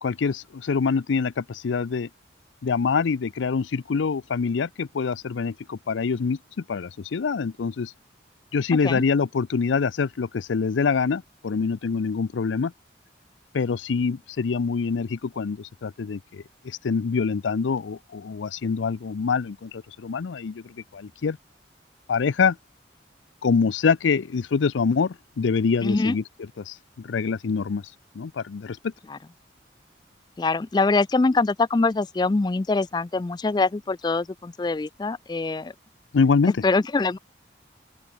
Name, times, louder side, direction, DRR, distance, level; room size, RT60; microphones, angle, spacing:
voice 1, 0.0-2.1 2.6-7.9 8.5-12.7 13.5-21.4 22.1-22.6 23.4-27.8 28.1-28.9 36.1-36.6, left 5 dB, 85° left, 0.5 m, -25 dB
voice 2, 25.8-26.1 29.1-29.2 30.4-35.7 36.6-37.2, left 3 dB, 25° left, 0.3 m, -23 dB
open air
head